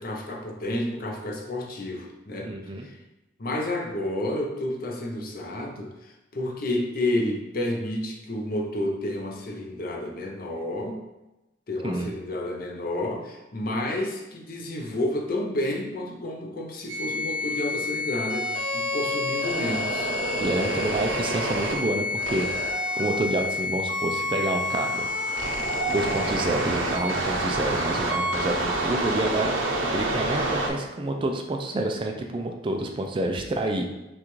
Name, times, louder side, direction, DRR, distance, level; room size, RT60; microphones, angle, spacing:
voice 1, 0.0-2.5 2.8-3.0 3.4-11.0 11.7-20.1 20.5-20.8, left 1 dB, 50° left, 1 dB, 0.6 m, -30 dB
voice 2, 2.4-2.9 11.8-12.1 20.4-22.6 23.0-25.1 25.9-29.5 29.9-33.9, right 2 dB, 25° right, 3 dB, 0.3 m, -28 dB
sound 1, 16.9-30.7, equal, 85° right, 0.6 m, -28 dB
5.9 x 2.4 x 3.1 m, 0.99 s
head